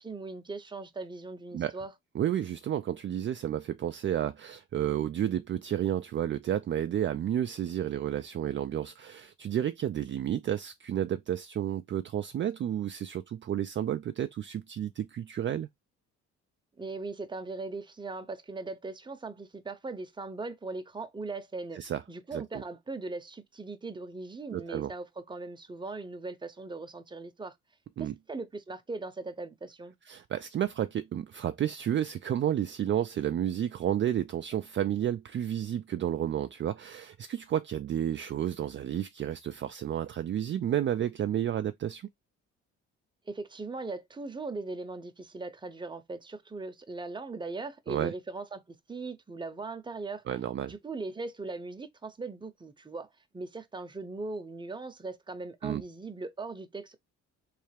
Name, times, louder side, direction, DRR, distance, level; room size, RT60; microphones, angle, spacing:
voice 1, 0.0-1.9 16.8-21.8 22.1-27.6 28.0-29.9 43.3-50.2 50.7-53.1 53.3-57.0, right 3 dB, 15° right, 0.7 m, -39 dB
voice 2, 2.1-15.7 21.7-22.0 22.3-22.6 24.5-24.9 28.0-28.1 30.1-42.0 47.9-48.1 50.3-50.7 55.6-55.8, right 10 dB, 40° right, 0.4 m, -31 dB
3.3 x 3.3 x 3.2 m
cardioid pair, 90°, 30 cm